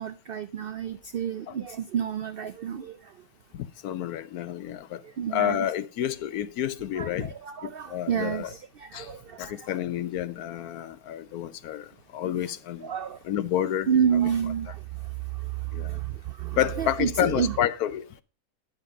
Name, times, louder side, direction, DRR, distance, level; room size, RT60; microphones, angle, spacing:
voice 1, 0.0-3.0 5.0-5.6 7.0-9.7 12.8-13.2 13.9-14.8 15.8-16.1 16.4-17.6, right 8 dB, 90° right, 0.5 m, -29 dB
voice 2, 3.5-5.0 5.3-7.3 7.6-8.5 8.9-9.1 9.4-11.9 12.1-12.9 13.2-13.9 15.7-15.9 16.6-18.0, left 11 dB, 80° left, 1.2 m, -29 dB
10.5 x 5.9 x 5.0 m
omnidirectional pair, 1.6 m